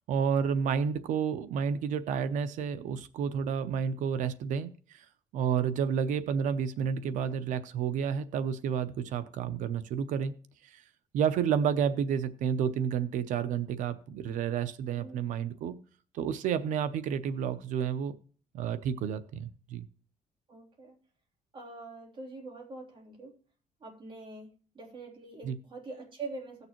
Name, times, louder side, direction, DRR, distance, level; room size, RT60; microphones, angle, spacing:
voice 1, 0.1-5.0 5.3-10.3 10.7-10.8 11.1-15.8 16.1-18.2 18.5-19.9 25.4-25.6, right 7 dB, 80° right, 13 dB, 0.7 m, -30 dB
voice 2, 20.5-21.0 21.5-23.4 23.8-24.5 24.7-26.7, right 3 dB, 40° right, -1 dB, 3.2 m, -44 dB
16.5 x 6.7 x 3.0 m, 0.42 s
cardioid pair, 120°, 13 cm